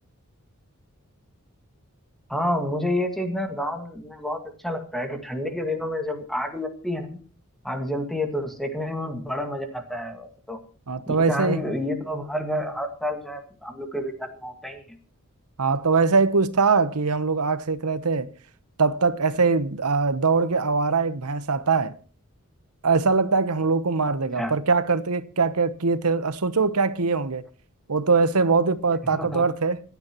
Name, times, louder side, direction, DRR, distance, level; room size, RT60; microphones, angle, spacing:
voice 1, 2.3-7.2 7.6-10.6 11.1-14.8 24.4-24.5 29.1-29.5, left 1 dB, ahead, 1.9 m, -29 dB
voice 2, 10.9-11.6 15.6-18.3 18.8-22.0 22.8-27.4 27.9-29.8, right 4 dB, 90° right, 1.0 m, -22 dB
26.5 x 9.5 x 3.0 m
head